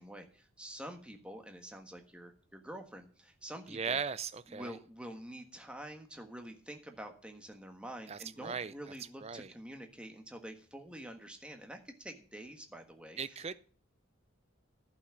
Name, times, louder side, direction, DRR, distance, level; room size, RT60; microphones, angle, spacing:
voice 1, 0.0-4.0 4.5-13.5, right 1 dB, 5° right, 4 dB, 1.5 m, -47 dB
voice 2, 3.7-4.8 8.1-8.7 9.2-9.5 13.2-13.5, right 6 dB, 30° right, 14 dB, 0.5 m, -38 dB
11.5 x 6.0 x 7.8 m, 0.40 s
head